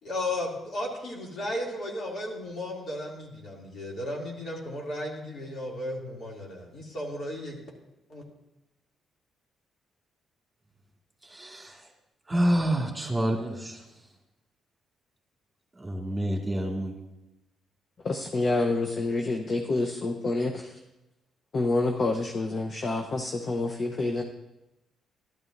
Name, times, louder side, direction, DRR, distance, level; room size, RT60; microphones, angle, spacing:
voice 1, 0.0-7.6 8.1-8.2, left 1 dB, 60° left, -2 dB, 2.7 m, -34 dB
voice 2, 11.2-11.8 12.3-13.8 15.8-16.9, right 1 dB, 15° right, 0 dB, 2.0 m, -28 dB
voice 3, 18.0-20.8 21.5-24.2, left 2 dB, 40° left, 3 dB, 0.8 m, -28 dB
12.5 x 12.0 x 2.6 m, 0.93 s
cardioid pair, 90°, 0 cm